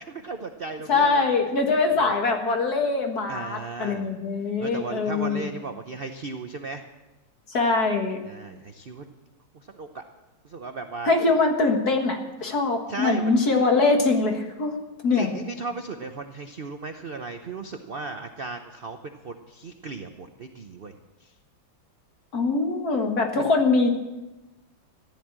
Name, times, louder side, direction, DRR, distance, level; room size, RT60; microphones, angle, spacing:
voice 1, 0.1-1.2 1.9-2.1 3.3-4.1 4.6-6.8 8.2-9.0 9.5-10.0 10.4-11.1 12.9-13.3 15.1-20.9 21.2-21.3 23.4-23.5, right 4 dB, 55° right, 6 dB, 0.6 m, -36 dB
voice 2, 0.9-5.5 7.5-8.2 11.0-14.8 15.0-15.3 22.3-23.9, left 3 dB, 50° left, 3 dB, 2.2 m, -23 dB
15.0 x 10.5 x 7.4 m, 1.1 s
omnidirectional pair, 2.1 m